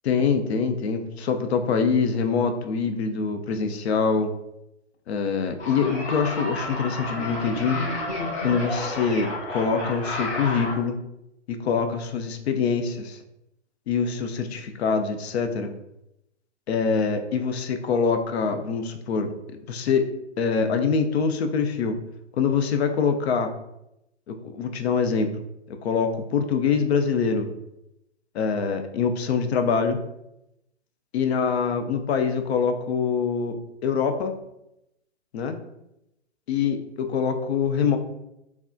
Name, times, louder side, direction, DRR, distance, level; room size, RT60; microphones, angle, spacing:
voice 1, 0.0-4.3 5.1-7.8 8.4-11.0 11.5-13.2 13.9-15.7 16.7-19.3 19.7-20.1 20.4-22.0 22.4-23.5 24.3-25.3 25.8-27.5 28.3-30.0 31.1-33.6 33.8-34.3 35.3-35.6 36.5-38.0, left 5 dB, 65° left, 7 dB, 0.5 m, -24 dB
sound 1, 5.6-10.7, left 2 dB, 80° left, 1.2 m, -31 dB
3.3 x 2.2 x 2.5 m, 0.86 s
hypercardioid pair, 130°, 35 cm